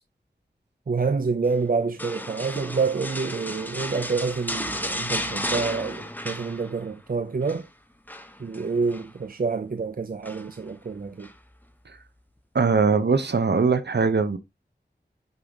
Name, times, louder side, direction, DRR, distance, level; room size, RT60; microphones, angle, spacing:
voice 1, 0.9-7.7 8.4-11.3, right 4 dB, 55° right, 0.6 m, -27 dB
sound 1, 2.0-7.0 7.3-7.6 8.1-9.1 10.2-10.7 11.2-11.4, left 1 dB, 10° left, 1.2 m, -33 dB
voice 2, 12.5-14.4, right 4 dB, 75° right, 1.0 m, -21 dB
9.3 x 5.2 x 3.0 m
wide cardioid pair, 65°, 18 cm